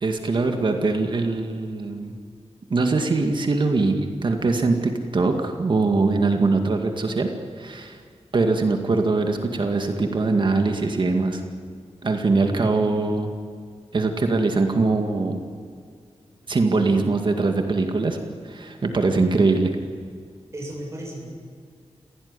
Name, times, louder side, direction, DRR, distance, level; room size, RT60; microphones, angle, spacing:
voice 1, 0.0-2.1 2.7-7.3 7.6-8.0 8.3-11.4 12.0-13.3 13.9-15.4 16.5-18.2 18.4-19.7, right 3 dB, 45° right, 4 dB, 2.0 m, -22 dB
voice 2, 12.5-12.9 20.5-21.2, right 1 dB, 25° right, -1 dB, 7.6 m, -35 dB
27.5 x 17.0 x 9.8 m, 2.2 s
wide cardioid pair, 175°, 11 cm